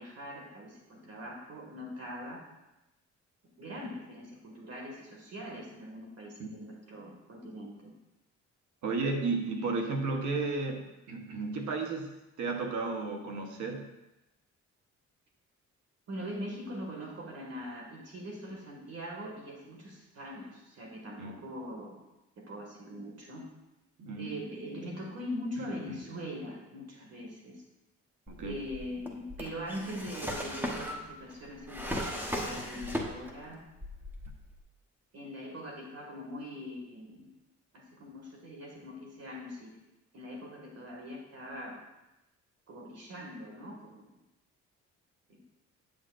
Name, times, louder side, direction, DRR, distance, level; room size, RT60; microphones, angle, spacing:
voice 1, 0.0-2.4 3.6-7.9 9.5-9.7 16.1-22.0 22.4-23.4 24.1-27.6 28.4-33.6 35.1-37.3 37.7-39.7 40.1-41.8 42.7-44.2 45.3-45.4, equal, 55° right, -1 dB, 1.9 m, -42 dB
voice 2, 8.8-13.9 21.2-21.4 24.0-24.4 25.6-25.7 28.3-28.6, right 3 dB, 75° right, 3 dB, 1.2 m, -33 dB
Drawer open or close, 28.3-33.5 33.8-34.6, equal, 5° right, 1.0 m, -37 dB
8.7 x 6.4 x 2.5 m, 0.96 s
cardioid pair, 90°, 30 cm